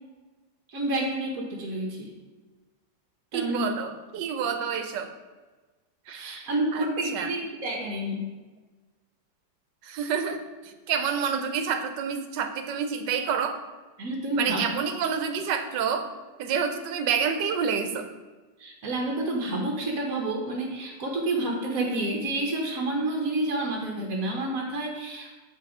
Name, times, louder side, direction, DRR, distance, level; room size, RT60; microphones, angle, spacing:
voice 1, 0.7-2.1 3.3-3.6 6.1-8.3 14.0-14.7 18.6-25.4, right 2 dB, 55° right, 0 dB, 1.4 m, -29 dB
voice 2, 3.3-5.1 6.1-6.9 7.1-7.3 9.8-13.6 14.3-16.1 16.4-18.1, right 7 dB, 80° right, 7 dB, 1.4 m, -28 dB
7.8 x 5.5 x 4.9 m, 1.2 s
omnidirectional pair, 1.9 m